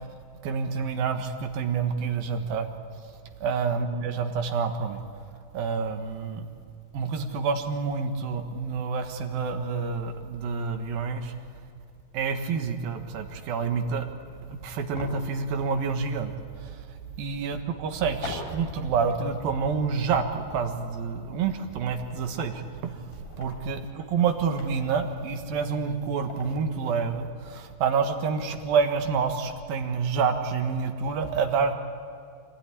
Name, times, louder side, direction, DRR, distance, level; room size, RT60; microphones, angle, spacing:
voice 1, 0.4-2.7 3.4-5.0 5.5-6.5 6.9-11.3 12.1-14.1 14.5-16.3 16.6-16.8 17.2-23.1 23.4-31.8, right 5 dB, 85° right, 6 dB, 3.3 m, -28 dB
sound 1, 11.2-11.4 12.2-12.4 12.9-14.1 15.0-16.1 16.5-16.6 18.2-19.1 19.3-19.4 21.1-21.2 21.4-22.7 23.1-26.7, left 3 dB, 85° left, 5.9 m, -44 dB
25.5 x 19.0 x 10.0 m, 2.4 s
omnidirectional pair, 4.1 m